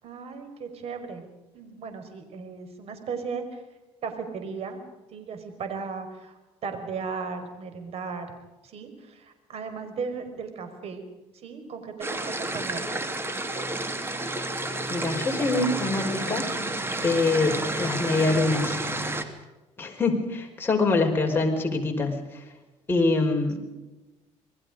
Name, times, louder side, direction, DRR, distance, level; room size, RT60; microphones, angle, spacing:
voice 1, 0.0-1.2 1.5-3.6 4.0-4.8 5.1-8.3 8.6-11.1 11.3-13.0, right 5 dB, 55° right, 7 dB, 5.2 m, -36 dB
sound 1, 12.0-19.2, right 2 dB, 20° right, 2.8 m, -30 dB
voice 2, 14.9-16.5 17.0-18.8 19.8-22.4 22.9-23.6, left 3 dB, 20° left, 0 dB, 5.5 m, -24 dB
28.0 x 21.0 x 5.2 m, 1.1 s
cardioid pair, 110°, 12 cm